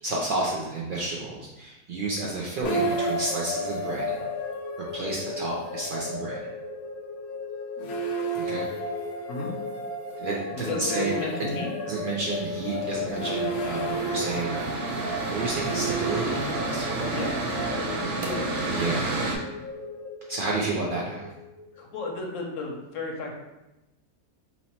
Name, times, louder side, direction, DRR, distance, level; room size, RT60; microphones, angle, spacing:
voice 1, 0.0-4.2 4.9-6.4 8.3-8.7 10.2-11.1 11.4-11.5 11.8-14.9 15.3-17.2 18.8-19.1 20.3-21.3, right 2 dB, 90° right, -3 dB, 0.4 m, -31 dB
sound 1, 2.6-21.7, equal, 90° left, 1.1 m, -33 dB
voice 2, 10.6-11.7 17.1-17.4 18.2-18.5 21.7-23.3, left 3 dB, 65° left, 1 dB, 1.0 m, -33 dB
Mechanical fan, 12.3-19.4, right 3 dB, 60° right, 0.7 m, -31 dB
2.9 x 2.8 x 4.2 m, 0.98 s
omnidirectional pair, 1.6 m